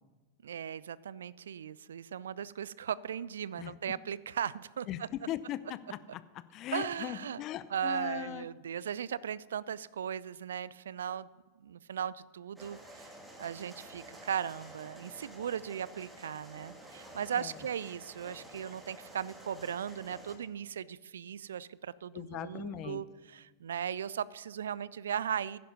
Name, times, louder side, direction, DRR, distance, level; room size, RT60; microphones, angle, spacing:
voice 1, 0.4-5.1 6.7-7.4 7.7-11.3 11.6-13.1 13.4-25.6, right 8 dB, 65° right, 21 dB, 0.4 m, -37 dB
voice 2, 4.9-6.2 6.5-8.5 17.4-17.6 22.1-23.0, left 12 dB, 35° left, 15 dB, 0.7 m, -39 dB
sound 1, 12.6-20.4, right 1 dB, 10° right, 2.5 m, -51 dB
15.5 x 10.5 x 5.4 m, 1.3 s
figure-of-eight pair, 90°, 0 cm